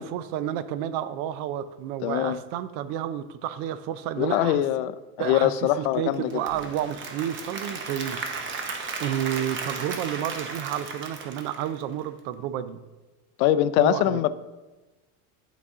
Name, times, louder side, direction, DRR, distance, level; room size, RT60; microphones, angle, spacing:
voice 1, 0.0-4.6 5.2-5.5 5.8-8.4 9.0-12.8 13.8-14.2, right 10 dB, 60° right, 14 dB, 0.6 m, -31 dB
voice 2, 2.0-2.4 4.2-6.4 13.4-14.3, left 12 dB, 75° left, 14 dB, 0.5 m, -23 dB
Applause / Crowd, 6.1-12.2, right 4 dB, 30° right, 0.8 m, -35 dB
11.0 x 4.0 x 3.6 m, 1.2 s
supercardioid pair, 135°, 42 cm